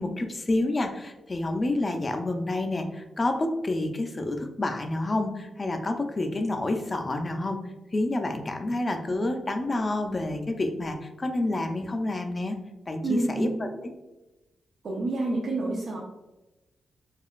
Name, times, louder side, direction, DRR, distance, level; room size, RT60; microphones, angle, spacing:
voice 1, 0.0-7.6 7.9-12.6 12.9-13.9, left 2 dB, 30° left, 5 dB, 0.4 m, -29 dB
voice 2, 13.0-13.6 14.8-16.0, right 2 dB, 60° right, -3 dB, 0.6 m, -28 dB
4.8 x 2.4 x 2.4 m, 1.0 s
cardioid pair, 85°, 0 cm